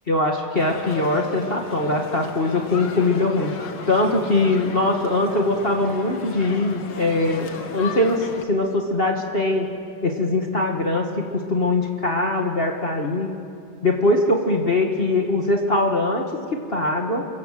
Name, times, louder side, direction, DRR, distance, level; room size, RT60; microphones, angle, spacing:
voice 1, 0.1-3.5 3.9-9.7 10.0-13.3 13.8-17.2, left 2 dB, 30° left, 2 dB, 2.0 m, -22 dB
sound 1, 0.5-8.4, left 5 dB, 70° left, 2.2 m, -36 dB
28.5 x 24.0 x 7.7 m, 2.3 s
omnidirectional pair, 2.1 m